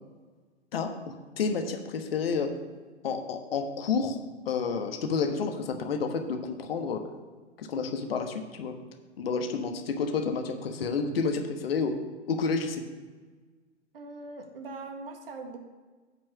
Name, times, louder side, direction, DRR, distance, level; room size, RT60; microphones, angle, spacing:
voice 1, 0.7-2.5 3.0-4.2 4.4-7.0 7.6-8.7 9.2-11.9 12.3-12.8, left 5 dB, 55° left, 6 dB, 1.3 m, -30 dB
voice 2, 13.9-15.6, right 3 dB, 50° right, 5 dB, 1.6 m, -41 dB
8.1 x 5.4 x 7.0 m, 1.4 s
figure-of-eight pair, 115°, 36 cm